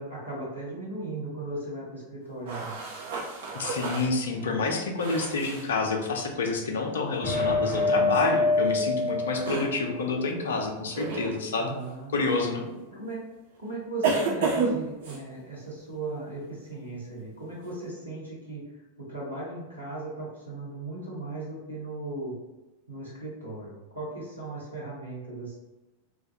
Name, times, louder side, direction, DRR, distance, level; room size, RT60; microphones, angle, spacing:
voice 1, 0.0-2.8 11.7-12.3 12.7-13.2 13.6-18.6 19.0-22.4 22.9-25.6, right 2 dB, 85° right, -5 dB, 0.8 m, -37 dB
sound 1, 2.4-5.7 8.1-8.3 9.3-9.7 10.9-11.3 12.2-12.4 14.0-15.2, right 4 dB, 55° right, 0.6 m, -30 dB
voice 2, 3.5-11.7 12.1-12.6, left 3 dB, 65° left, 2 dB, 0.4 m, -28 dB
sound 2, 7.2-9.9, left 2 dB, 20° left, 0.9 m, -26 dB
2.3 x 2.3 x 2.7 m, 1.0 s
figure-of-eight pair, 90°, 0 cm